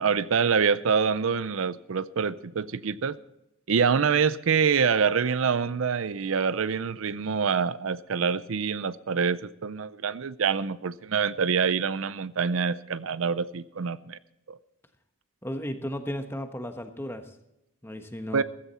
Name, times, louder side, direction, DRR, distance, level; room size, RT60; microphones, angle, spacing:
voice 1, 0.0-3.2 3.7-14.2 14.5-14.6 18.3-18.4, right 6 dB, 75° right, 0.5 m, -26 dB
voice 2, 15.4-17.2 17.8-18.4, equal, 10° left, 1.2 m, -34 dB
15.5 x 14.0 x 4.2 m
head